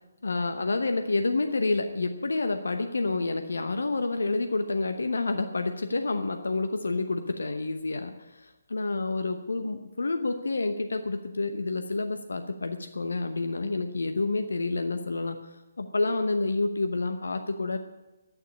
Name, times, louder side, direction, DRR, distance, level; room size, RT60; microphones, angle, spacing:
voice 1, 0.2-15.4 15.8-17.8, left 3 dB, 70° left, 7 dB, 0.9 m, -29 dB
11.0 x 9.4 x 8.6 m, 1.1 s
figure-of-eight pair, 140°, 0 cm